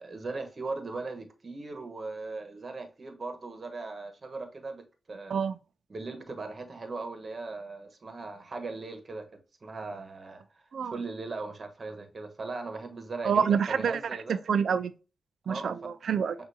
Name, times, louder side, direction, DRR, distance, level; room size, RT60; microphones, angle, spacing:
voice 1, 0.0-5.4 5.9-14.4 15.5-15.7, right 3 dB, 45° right, 1.1 m, -39 dB
voice 2, 13.2-14.0 14.5-14.9 15.5-16.3, right 7 dB, 75° right, 0.4 m, -27 dB
6.1 x 2.6 x 2.7 m
cardioid pair, 50°, 0 cm